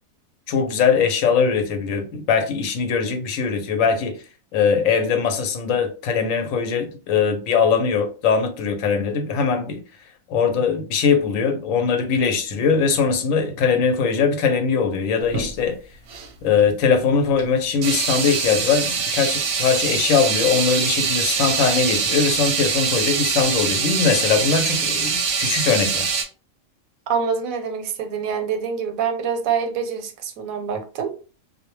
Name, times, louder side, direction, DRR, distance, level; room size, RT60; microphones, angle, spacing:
voice 1, 0.5-4.2 4.5-9.8 10.3-15.8 16.4-26.1, left 6 dB, 75° left, 0.9 m, -21 dB
sound 1, 15.2-15.5 16.1-16.3 17.4-17.5 17.8-26.2, right 5 dB, 65° right, 0.7 m, -23 dB
voice 2, 27.1-31.1, right 6 dB, 90° right, 1.0 m, -25 dB
2.3 x 2.1 x 2.9 m
omnidirectional pair, 1.4 m